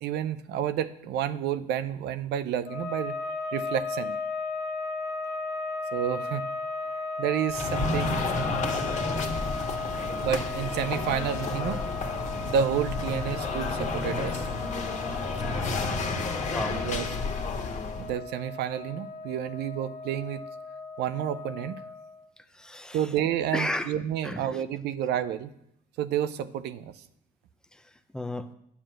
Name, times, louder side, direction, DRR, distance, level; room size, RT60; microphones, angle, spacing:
voice 1, 0.0-3.2 3.5-4.2 5.9-6.5 7.2-8.5 10.2-11.8 12.4-14.5 16.1-16.3 16.8-17.1 18.0-20.4 21.0-21.8 22.9-25.5 26.0-27.0, right 9 dB, 80° right, 12 dB, 0.7 m, -30 dB
sound 1, 2.6-22.3, left 3 dB, 75° left, 1.6 m, -36 dB
sound 2, 7.5-18.1, left 3 dB, 45° left, 1.7 m, -31 dB
voice 2, 22.4-23.1 23.5-24.0 24.2-24.6 27.7-28.5, left 1 dB, 5° left, 8 dB, 0.8 m, -35 dB
10.0 x 7.1 x 7.5 m, 0.76 s
cardioid pair, 110°, 17 cm